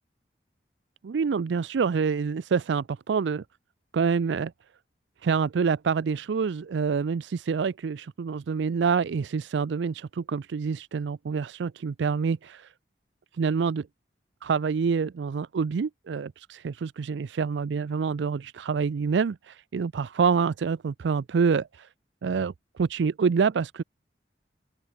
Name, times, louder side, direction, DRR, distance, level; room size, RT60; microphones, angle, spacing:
voice 1, 1.0-3.4 3.9-4.5 5.2-12.7 13.3-13.9 14.4-21.9 22.2-23.8, right 5 dB, 90° right, 0.4 m, -27 dB
open air
head